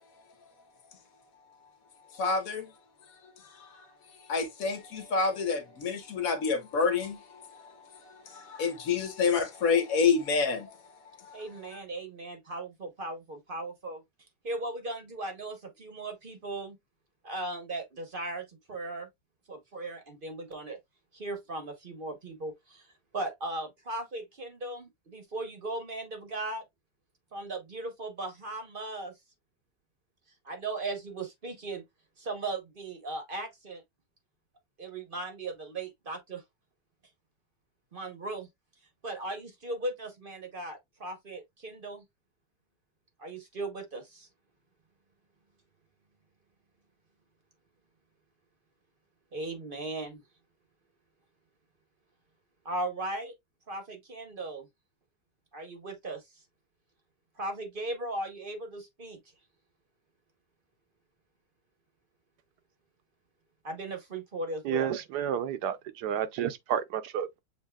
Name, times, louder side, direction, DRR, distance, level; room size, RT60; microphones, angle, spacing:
voice 1, 2.1-2.7 3.4-3.9 4.3-10.8 11.2-11.4, left 5 dB, 55° left, 1.3 m, -29 dB
voice 2, 11.3-14.0 14.4-16.8 17.2-19.1 19.5-20.8 21.1-26.6 27.3-29.1 30.4-31.8 32.2-33.8 34.8-36.4 37.9-38.5 39.0-42.0 43.2-44.3 49.3-50.2 52.6-53.3 53.7-54.7 55.5-56.2 57.4-59.2 63.6-64.9, right 2 dB, 40° right, 0.9 m, -37 dB
voice 3, 64.6-67.4, right 9 dB, 70° right, 1.2 m, -31 dB
7.3 x 2.8 x 2.3 m
omnidirectional pair, 1.9 m